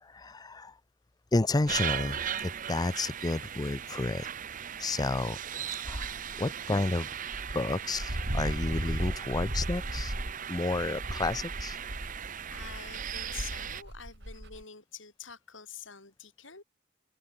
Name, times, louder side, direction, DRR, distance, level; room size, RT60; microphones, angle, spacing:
voice 1, 0.1-0.7 1.3-4.3 4.8-5.4 5.8-6.1 6.4-7.1 7.5-10.1 10.5-11.8, left 2 dB, 20° left, 0.5 m, -31 dB
sound 1, 1.7-13.8, right 8 dB, 45° right, 0.7 m, -38 dB
Dog, 5.8-6.4 7.0-7.1 7.3-14.6, equal, 65° right, 4.1 m, -36 dB
voice 2, 12.5-16.6, left 7 dB, 85° left, 7.1 m, -47 dB
head